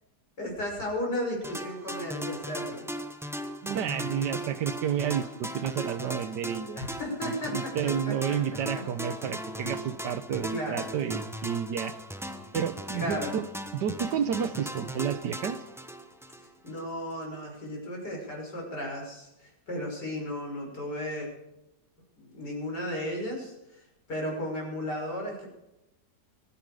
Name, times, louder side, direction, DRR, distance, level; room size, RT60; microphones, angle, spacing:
voice 1, 0.4-2.9 6.8-8.4 10.5-10.9 12.9-13.4 16.6-21.3 22.2-23.8 24.1-25.5, equal, 70° left, -1 dB, 6.5 m, -34 dB
sound 1, 1.4-16.8, equal, ahead, 0.8 m, -38 dB
voice 2, 3.6-6.8 7.2-11.9 12.5-13.5 13.7-15.6, right 8 dB, 80° right, 13 dB, 1.5 m, -31 dB
24.5 x 10.5 x 4.9 m, 0.92 s
omnidirectional pair, 1.9 m